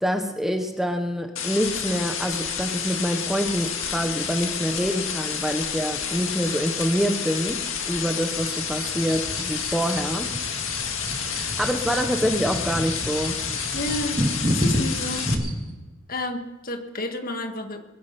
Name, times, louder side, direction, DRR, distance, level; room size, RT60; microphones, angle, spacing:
voice 1, 0.0-10.3 11.3-13.4, equal, ahead, 5 dB, 1.0 m, -26 dB
sound 1, 1.4-15.4, left 7 dB, 90° left, 2.0 m, -30 dB
sound 2, 8.2-15.7, equal, 25° right, 2.4 m, -30 dB
voice 2, 13.7-14.2 14.5-15.4 16.1-17.8, left 1 dB, 45° left, 6 dB, 1.7 m, -30 dB
22.0 x 10.5 x 5.9 m, 1.2 s
head